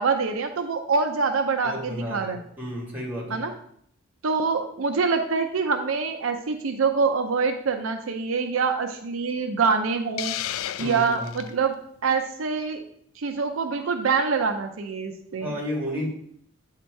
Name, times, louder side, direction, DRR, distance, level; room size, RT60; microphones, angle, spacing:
voice 1, 0.0-2.4 3.3-3.5 4.2-10.4 10.8-11.8 12.0-12.8 13.2-15.5, right 5 dB, 75° right, 6 dB, 0.6 m, -25 dB
voice 2, 1.6-3.5 10.8-11.3 15.4-16.1, equal, 10° right, -4 dB, 1.8 m, -32 dB
Hiss, 10.2-11.5, left 12 dB, 85° left, 0.3 m, -32 dB
8.4 x 2.9 x 4.5 m, 0.67 s
head